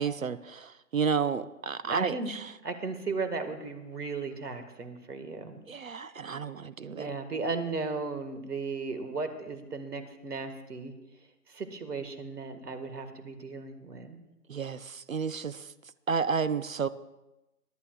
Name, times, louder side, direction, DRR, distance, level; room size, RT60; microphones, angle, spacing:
voice 1, 0.0-2.4 5.7-7.1 14.5-15.6 16.1-16.9, right 5 dB, 60° right, 15 dB, 0.5 m, -31 dB
voice 2, 1.8-2.3 2.6-5.6 6.9-10.9 11.5-14.2, right 4 dB, 80° right, 8 dB, 1.9 m, -36 dB
22.5 x 11.5 x 2.4 m, 0.99 s
hypercardioid pair, 180°, 47 cm